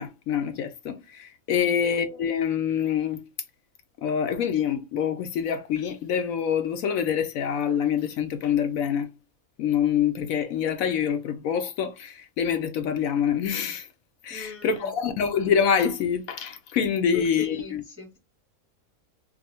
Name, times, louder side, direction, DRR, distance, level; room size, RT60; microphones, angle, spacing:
voice 1, 0.0-3.2 4.0-9.1 9.6-13.9 14.2-17.8, left 8 dB, 70° left, 0.9 m, -26 dB
voice 2, 14.3-14.9 17.0-18.2, left 2 dB, 15° right, 0.6 m, -40 dB
2.6 x 2.5 x 4.1 m
omnidirectional pair, 1.6 m